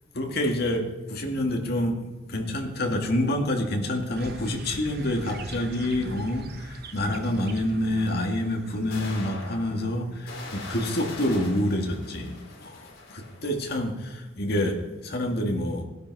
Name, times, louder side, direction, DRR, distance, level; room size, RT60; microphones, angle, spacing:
voice 1, 0.1-15.8, left 1 dB, 55° left, 2 dB, 2.1 m, -27 dB
sound 1, 4.1-10.3, right 3 dB, 50° right, 1.2 m, -44 dB
sound 2, 6.2-6.3 8.1-8.2 8.9-13.6, left 2 dB, 80° left, 4.4 m, -42 dB
17.0 x 12.0 x 4.8 m, 1.1 s
head